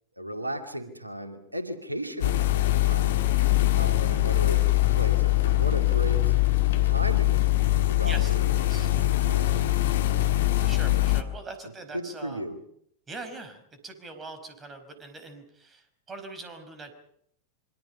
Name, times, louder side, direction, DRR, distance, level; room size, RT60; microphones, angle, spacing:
voice 1, 0.2-2.5 2.8-3.3 3.7-6.3 6.8-10.0 11.9-12.6, equal, 85° right, 8 dB, 2.5 m, -36 dB
sound 1, 2.2-11.2, left 16 dB, 60° left, 1.8 m, -23 dB
voice 2, 8.6-8.9 10.6-12.4 13.1-16.9, right 3 dB, 20° right, 8 dB, 5.2 m, -42 dB
27.0 x 24.5 x 5.7 m, 0.68 s
figure-of-eight pair, 90°, 0 cm